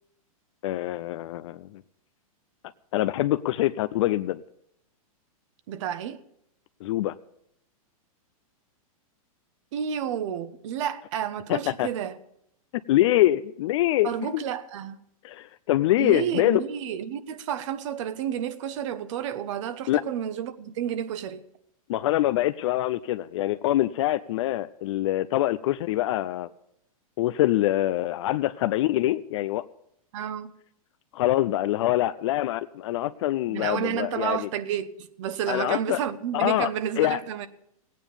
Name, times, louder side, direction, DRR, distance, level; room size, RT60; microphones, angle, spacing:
voice 1, 0.6-1.7 2.9-4.4 6.8-7.1 11.5-11.9 12.9-14.4 15.2-16.6 19.9-20.0 21.9-26.5 27.2-29.7 31.1-34.5 35.5-36.0 36.3-36.7 37.0-37.2, left 15 dB, 55° left, 0.5 m, -24 dB
voice 2, 5.7-6.2 9.7-12.2 14.0-15.0 16.0-21.4 30.1-30.5 33.5-37.5, right 9 dB, 55° right, 1.1 m, -31 dB
16.0 x 9.2 x 7.0 m
hypercardioid pair, 140°, 19 cm